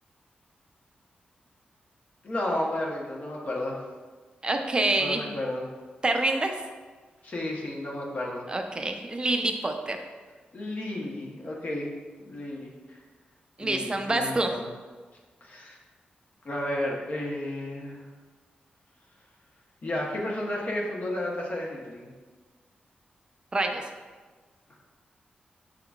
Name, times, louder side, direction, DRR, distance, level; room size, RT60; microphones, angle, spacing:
voice 1, 2.2-3.9 5.0-5.7 7.2-8.4 10.5-11.9 12.2-13.0 13.6-14.7 15.4-15.8 16.4-18.0 19.8-22.1, left 1 dB, 50° left, -2 dB, 0.8 m, -32 dB
voice 2, 4.4-5.3 6.0-6.5 8.5-10.0 13.6-14.5 23.5-23.8, right 2 dB, 30° right, 5 dB, 0.4 m, -26 dB
6.0 x 3.7 x 2.3 m, 1.4 s
cardioid pair, 90°, 3 cm